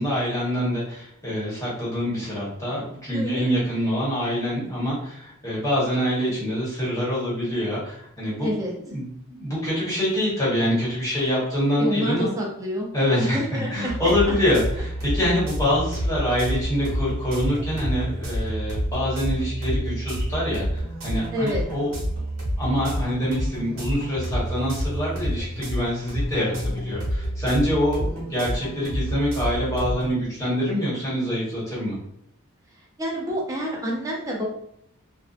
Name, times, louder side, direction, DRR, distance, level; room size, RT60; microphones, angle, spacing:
voice 1, 0.0-8.5 8.8-12.3 12.9-21.9 22.6-32.0, equal, 15° left, -8 dB, 1.1 m, -25 dB
voice 2, 3.1-3.5 8.4-8.7 11.8-12.9 13.2-14.3 21.3-21.6 33.0-34.4, equal, 15° right, -2 dB, 0.5 m, -28 dB
sound 1, 13.9-30.1, equal, 65° right, 1.0 m, -29 dB
2.5 x 2.2 x 2.4 m, 0.71 s
head